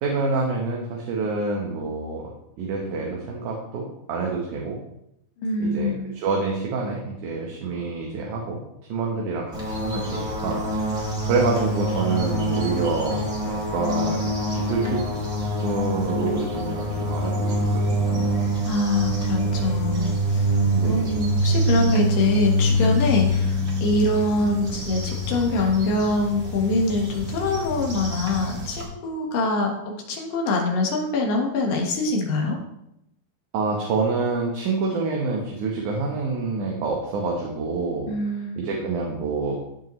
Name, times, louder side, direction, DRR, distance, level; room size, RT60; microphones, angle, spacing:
voice 1, 0.0-4.8 5.6-8.6 8.9-15.1 15.6-18.4 20.7-21.2 33.5-38.2 38.6-39.6, right 3 dB, 70° right, -1 dB, 2.5 m, -27 dB
voice 2, 5.4-6.1 18.6-20.6 20.8-29.7 30.1-32.6 38.1-38.8, left 2 dB, 85° left, 0 dB, 3.2 m, -24 dB
sound 1, 9.5-28.8, equal, 25° right, 1.8 m, -25 dB
14.5 x 5.4 x 3.1 m, 0.80 s
omnidirectional pair, 3.8 m